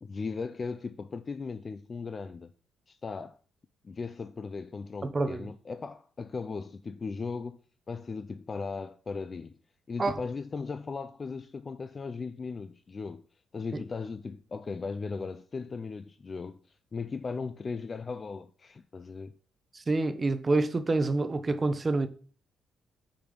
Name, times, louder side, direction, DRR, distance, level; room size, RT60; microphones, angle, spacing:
voice 1, 0.0-2.5 2.9-3.4 3.8-7.6 7.9-9.6 9.9-13.2 13.5-19.3, left 4 dB, 35° left, 0.4 m, -37 dB
voice 2, 5.0-5.5 10.0-10.2 13.7-13.8 19.7-22.1, right 3 dB, 30° right, 0.7 m, -27 dB
5.2 x 4.5 x 5.1 m
cardioid pair, 90°, 0 cm